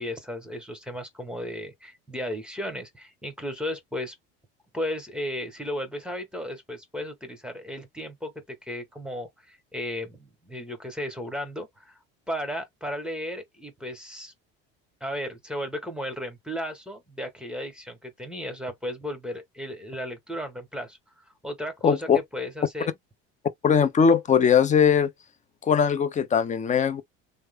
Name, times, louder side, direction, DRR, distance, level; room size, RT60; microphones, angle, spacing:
voice 1, 0.0-4.1 4.7-12.0 12.3-14.3 15.0-21.0 21.4-22.9, equal, 5° right, 1.2 m, -35 dB
voice 2, 21.8-22.2 23.6-25.1 25.6-27.0, left 7 dB, 25° left, 0.6 m, -20 dB
3.2 x 2.0 x 3.4 m
supercardioid pair, 110°, 31 cm